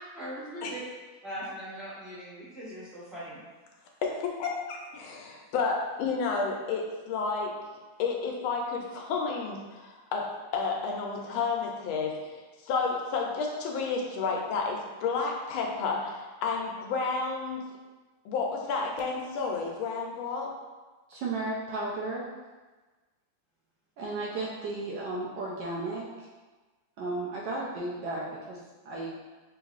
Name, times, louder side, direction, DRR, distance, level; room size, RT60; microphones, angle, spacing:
voice 1, 0.1-0.8 1.2-3.4, right 1 dB, ahead, -10 dB, 0.9 m, -40 dB
voice 2, 4.0-7.5 8.0-10.2 10.5-17.6 18.2-20.5, left 4 dB, 80° left, 0 dB, 1.5 m, -31 dB
voice 3, 21.1-22.3 24.0-26.1 27.0-29.1, right 2 dB, 70° right, -4 dB, 1.2 m, -34 dB
5.8 x 2.7 x 2.4 m, 1.3 s
omnidirectional pair, 2.3 m